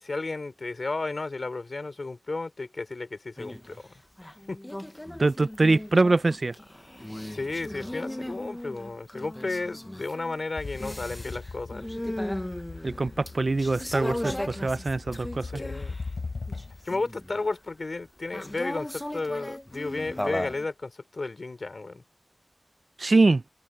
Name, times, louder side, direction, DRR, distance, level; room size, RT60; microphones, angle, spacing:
voice 1, 0.0-3.9 4.5-4.6 7.3-11.8 15.4-16.0 16.8-22.0, left 3 dB, 60° left, 3.9 m, -33 dB
sound 1, 3.4-3.8 4.2-16.1 16.5-17.4 18.3-20.6, left 1 dB, 15° left, 0.9 m, -37 dB
voice 2, 5.2-6.5 12.8-15.5 23.0-23.4, right 3 dB, 55° right, 0.5 m, -23 dB
sound 2, 10.6-16.9, left 4 dB, 80° left, 5.2 m, -39 dB
wide cardioid pair, 80°, 0 cm